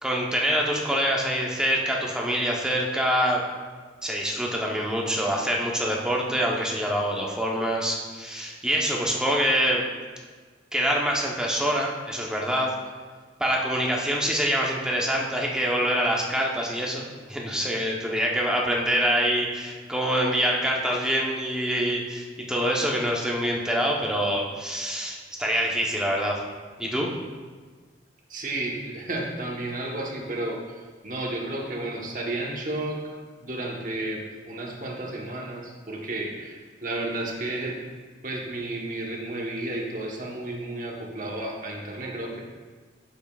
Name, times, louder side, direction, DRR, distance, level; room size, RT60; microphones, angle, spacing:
voice 1, 0.0-3.4 4.0-9.8 10.7-12.7 13.4-26.4 26.8-27.1, equal, 5° right, -2 dB, 0.8 m, -25 dB
voice 2, 28.3-37.8 38.2-42.4, right 2 dB, 45° right, -1 dB, 1.2 m, -32 dB
8.6 x 7.2 x 2.4 m, 1.5 s
head